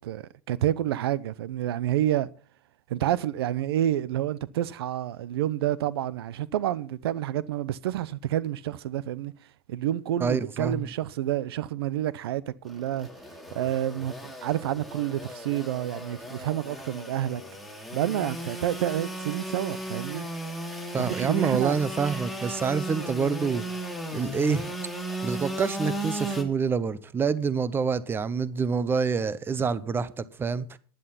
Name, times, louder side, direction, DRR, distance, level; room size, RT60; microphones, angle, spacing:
voice 1, 0.0-2.3 2.9-9.3 9.7-13.1 13.5-17.4 17.9-20.3 21.0-21.8, right 12 dB, 85° right, 0.8 m, -29 dB
voice 2, 10.2-10.8 20.9-23.6 24.1-24.7 25.2-30.8, right 5 dB, 15° right, 0.8 m, -27 dB
Engine / Sawing, 12.6-26.4, right 1 dB, ahead, 2.7 m, -36 dB
11.5 x 10.5 x 5.8 m
supercardioid pair, 130°, 13 cm